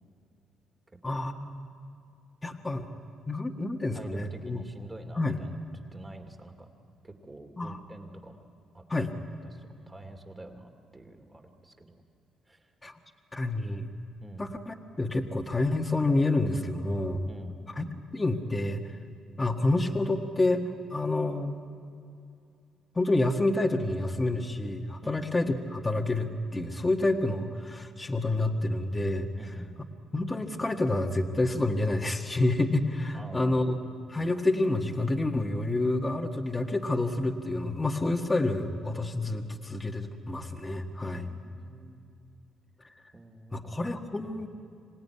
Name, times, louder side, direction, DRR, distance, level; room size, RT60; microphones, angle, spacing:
voice 1, 1.0-1.7 2.4-2.9 3.3-4.6 5.1-5.4 7.6-7.8 8.9-9.1 12.8-13.0 13.3-13.9 14.4-17.3 17.7-17.9 18.1-18.9 19.4-20.6 20.9-21.7 22.9-29.3 30.1-33.8 34.1-41.2 43.5-44.5, left 2 dB, 20° left, 2 dB, 1.7 m, -28 dB
voice 2, 3.9-5.6 5.9-6.7 7.0-8.4 8.7-9.1 9.4-12.0 12.5-12.7 14.2-14.5 17.3-17.6 25.0-25.3 29.4-29.9 33.1-33.7 34.2-34.3 41.0-42.0 43.1-43.8 44.4-44.5, right 2 dB, 20° right, 5 dB, 2.6 m, -47 dB
26.0 x 17.5 x 9.7 m, 2.5 s
cardioid pair, 85°, 0 cm